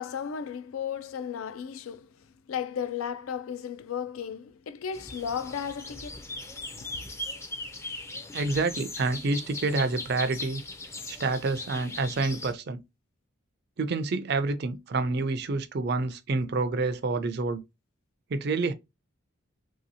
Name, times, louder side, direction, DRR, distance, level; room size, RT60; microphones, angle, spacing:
voice 1, 0.0-2.1 2.5-6.3, left 7 dB, 75° left, 0.4 m, -34 dB
sound 1, 4.9-12.5, left 2 dB, 15° left, 0.4 m, -39 dB
voice 2, 8.3-10.6 11.1-12.8 13.8-17.6 18.3-18.7, right 3 dB, 50° right, 0.4 m, -28 dB
3.0 x 2.7 x 2.7 m
head